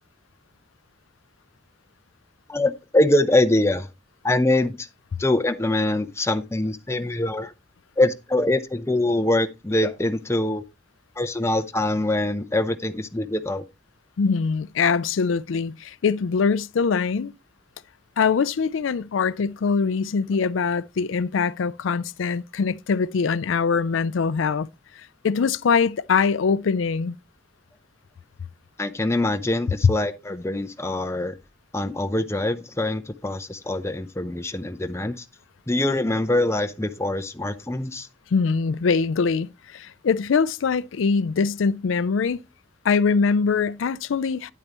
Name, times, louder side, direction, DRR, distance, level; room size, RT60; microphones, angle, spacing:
voice 1, 2.5-3.9 4.2-4.9 5.2-7.5 8.0-10.6 11.2-13.6 28.8-31.4 31.7-35.2 35.7-38.1, left 1 dB, 15° left, 0.7 m, -24 dB
voice 2, 14.2-17.3 18.2-24.7 25.0-27.1 38.3-42.4 42.8-44.5, left 5 dB, 90° left, 0.4 m, -23 dB
9.5 x 8.6 x 3.0 m
head